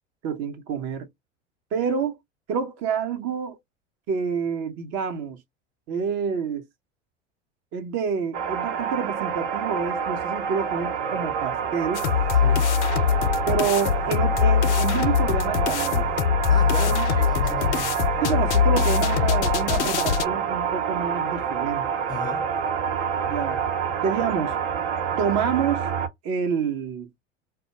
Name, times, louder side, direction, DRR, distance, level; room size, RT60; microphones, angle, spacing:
voice 1, 0.2-1.1 1.7-2.2 2.5-3.6 4.1-5.4 5.9-6.6 7.7-12.1 13.5-16.1 16.8-17.1 18.2-21.9 23.3-23.6 24.0-24.5 25.2-25.8 26.2-27.1, right 6 dB, 45° right, 0.8 m, -28 dB
sound 1, 8.3-26.1, right 7 dB, 70° right, 0.8 m, -27 dB
sound 2, 11.9-20.2, left 8 dB, 70° left, 0.5 m, -22 dB
voice 2, 16.5-18.0 22.1-22.5, left 4 dB, 10° left, 0.5 m, -35 dB
2.2 x 2.1 x 2.8 m
hypercardioid pair, 85°, 36 cm